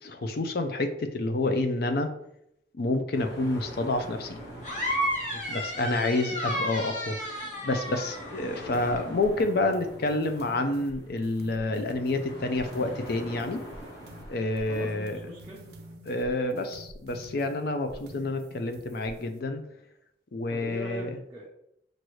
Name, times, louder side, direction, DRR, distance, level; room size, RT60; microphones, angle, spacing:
voice 1, 0.0-2.1 2.7-4.4 5.5-13.6 14.3-15.2 16.1-19.6 20.3-21.2, left 2 dB, 60° left, 7 dB, 0.5 m, -29 dB
sound 1, 3.1-15.9, equal, 85° left, 1.3 m, -45 dB
sound 2, 4.6-9.0, equal, 45° left, 1.2 m, -32 dB
voice 2, 5.2-6.0 14.7-15.7 20.5-21.5, right 1 dB, 20° right, -6 dB, 0.6 m, -41 dB
sound 3, 8.7-19.4, right 1 dB, 65° right, 0.6 m, -48 dB
6.2 x 2.6 x 3.1 m, 0.79 s
head